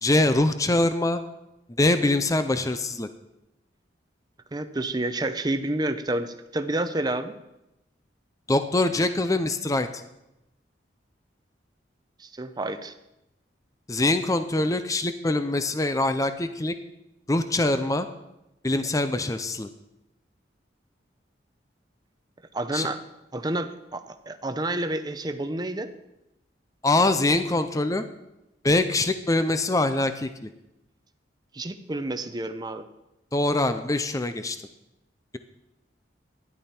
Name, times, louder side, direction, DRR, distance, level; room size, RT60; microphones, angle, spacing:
voice 1, 0.0-1.2 1.8-3.1 8.5-9.9 13.9-16.7 17.3-18.1 18.6-19.7 22.7-22.9 26.8-28.0 28.6-30.5 33.3-34.6, left 2 dB, 20° left, 9 dB, 0.5 m, -23 dB
voice 2, 4.5-7.4 12.2-12.9 22.5-23.0 23.3-25.9 31.5-32.9, right 1 dB, 20° right, 9 dB, 0.7 m, -29 dB
13.5 x 11.0 x 4.4 m, 0.91 s
head